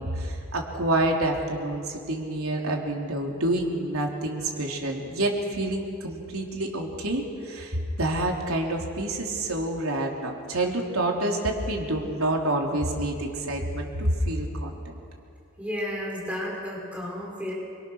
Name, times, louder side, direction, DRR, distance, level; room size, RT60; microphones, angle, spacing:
voice 1, 0.0-14.8, right 1 dB, 90° right, 0 dB, 3.7 m, -28 dB
voice 2, 15.6-17.5, left 1 dB, 5° right, -4 dB, 4.9 m, -32 dB
27.0 x 24.0 x 6.5 m, 2.5 s
head